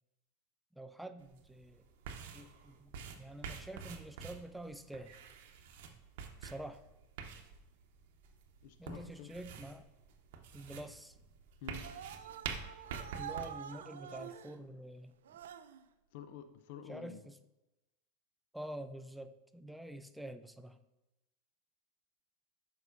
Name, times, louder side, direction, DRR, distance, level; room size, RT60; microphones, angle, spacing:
voice 1, 0.7-1.8 2.3-5.2 6.4-6.8 8.8-9.9 10.5-11.2 12.9-15.1 16.9-17.3 18.5-20.8, right 1 dB, 5° right, 0.4 m, -47 dB
sound 1, 1.2-13.5, right 6 dB, 70° right, 0.7 m, -48 dB
voice 2, 8.6-9.4 11.6-12.0 16.1-17.3, left 8 dB, 65° left, 0.4 m, -50 dB
sound 2, 11.8-14.6 15.3-15.8, right 9 dB, 90° right, 0.3 m, -46 dB
7.7 x 5.4 x 2.5 m
supercardioid pair, 115°, 0 cm